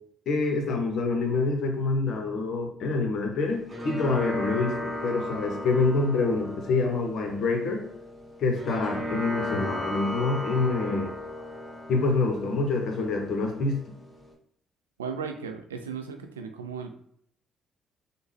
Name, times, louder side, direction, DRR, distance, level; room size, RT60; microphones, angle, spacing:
voice 1, 0.3-4.8 5.0-7.8 8.4-11.1 11.9-13.8, left 3 dB, 60° left, 3 dB, 0.7 m, -26 dB
sound 1, 3.4-14.3, left 1 dB, 15° right, 1.3 m, -36 dB
voice 2, 15.0-17.0, right 6 dB, 90° right, 6 dB, 0.3 m, -36 dB
3.5 x 2.1 x 3.2 m, 0.65 s
hypercardioid pair, 50°, 0 cm